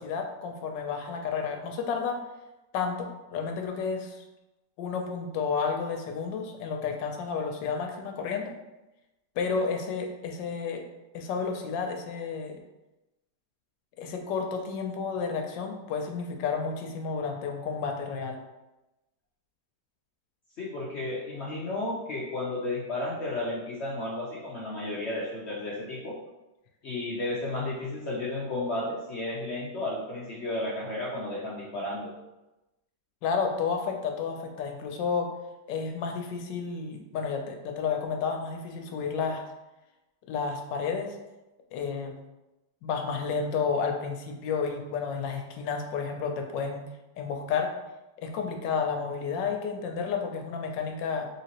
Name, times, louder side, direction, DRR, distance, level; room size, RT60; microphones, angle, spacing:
voice 1, 0.0-2.2 2.7-4.2 4.8-8.5 9.4-10.8 11.1-12.6 14.0-18.4 33.2-35.3 35.7-39.4 40.3-41.2 41.7-42.1 42.8-46.9 47.2-47.7 48.2-51.3, left 5 dB, 85° left, 3 dB, 1.3 m, -31 dB
voice 2, 20.6-26.2 26.8-32.1, left 2 dB, 65° left, -5 dB, 0.6 m, -33 dB
3.9 x 3.4 x 2.9 m, 1.0 s
omnidirectional pair, 1.9 m